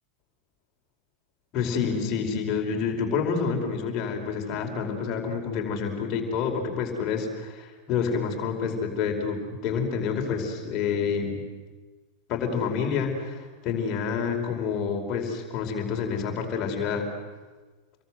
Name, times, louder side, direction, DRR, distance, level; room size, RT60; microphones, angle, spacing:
voice 1, 1.5-11.4 12.3-17.0, left 6 dB, 40° left, 2 dB, 5.1 m, -28 dB
28.5 x 22.5 x 8.0 m, 1.3 s
figure-of-eight pair, 90°, 0 cm